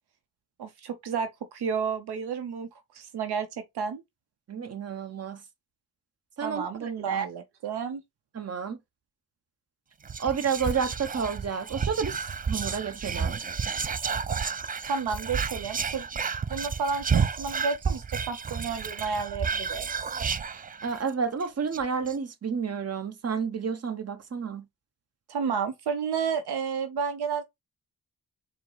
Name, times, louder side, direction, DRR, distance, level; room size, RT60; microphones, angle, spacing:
voice 1, 0.6-3.5 3.7-4.0 6.4-8.0 14.8-16.1 16.5-19.9 25.3-27.4, right 6 dB, 80° right, 0.7 m, -31 dB
voice 2, 4.5-5.4 6.4-7.3 8.3-8.8 10.2-13.4 20.8-24.6, right 6 dB, 40° right, 0.9 m, -30 dB
Whispering, 10.0-21.1 21.4-21.5 21.7-22.1, right 6 dB, 25° right, 0.3 m, -31 dB
4.5 x 2.1 x 3.9 m
cardioid pair, 50°, 39 cm